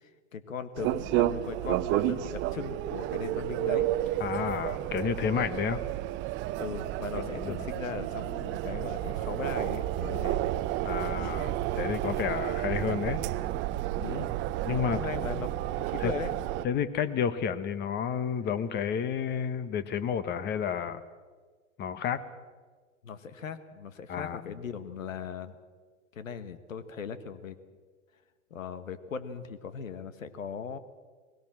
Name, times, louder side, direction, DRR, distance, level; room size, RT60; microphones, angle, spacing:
voice 1, 0.0-3.9 6.6-10.4 14.0-14.3 14.7-15.5 15.9-16.3 23.0-25.6 26.1-27.6 28.5-30.8, left 6 dB, 80° left, 12 dB, 1.6 m, -38 dB
sound 1, 0.7-16.6, right 14 dB, 30° right, 0.7 m, -31 dB
voice 2, 4.2-5.8 7.1-7.6 10.8-13.2 14.6-15.0 16.0-16.1 16.6-21.0 21.8-22.2 24.1-24.5, left 7 dB, 25° left, 14 dB, 1.2 m, -31 dB
20.5 x 17.5 x 7.5 m, 1.5 s
hypercardioid pair, 115°, 39 cm